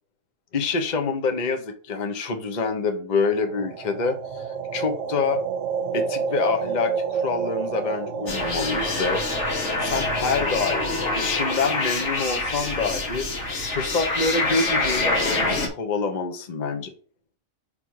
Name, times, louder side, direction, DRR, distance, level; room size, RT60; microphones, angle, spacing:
voice 1, 0.5-4.5 4.7-5.4 5.9-9.2 9.8-13.3 13.7-16.9, left 4 dB, 35° left, 5 dB, 1.0 m, -26 dB
sound 1, 3.4-11.4, right 6 dB, 65° right, 1.0 m, -30 dB
sound 2, 8.3-15.7, left 2 dB, 55° left, 1.7 m, -26 dB
5.6 x 3.6 x 4.7 m, 0.38 s
omnidirectional pair, 1.4 m